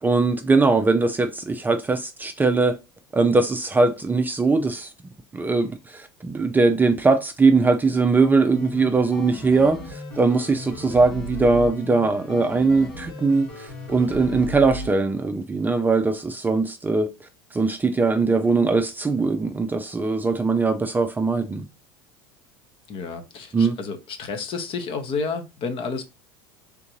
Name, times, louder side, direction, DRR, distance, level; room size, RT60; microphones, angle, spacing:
voice 1, 0.0-2.8 3.1-4.9 5.3-21.7 23.5-23.8, right 3 dB, 15° right, 0.4 m, -21 dB
sound 1, 8.5-14.9, left 1 dB, 80° left, 1.9 m, -36 dB
voice 2, 22.9-26.0, left 4 dB, 45° left, 0.9 m, -30 dB
3.6 x 2.6 x 2.9 m
hypercardioid pair, 95°, 12 cm